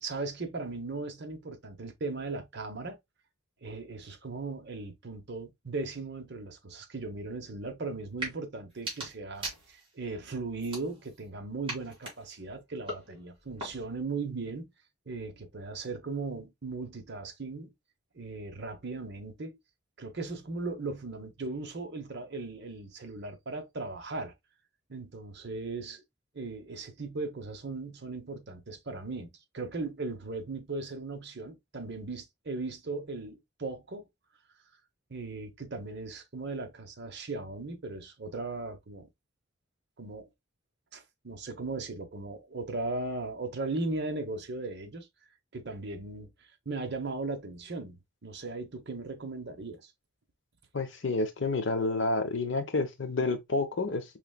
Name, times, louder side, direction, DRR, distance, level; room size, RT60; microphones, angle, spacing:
voice 1, 0.0-3.0 3.6-14.7 15.1-17.7 18.1-19.6 20.0-24.3 24.9-26.0 26.3-34.1 35.1-39.1 40.0-40.3 40.9-45.1 45.5-48.0 48.2-49.9, right 3 dB, 55° right, 0.8 m, -37 dB
sound 1, 8.1-8.4 8.7-10.0 10.6-11.3 11.7-14.0, right 2 dB, 25° right, 2.5 m, -41 dB
voice 2, 50.7-54.0, left 3 dB, 60° left, 0.8 m, -29 dB
5.0 x 3.2 x 2.2 m
head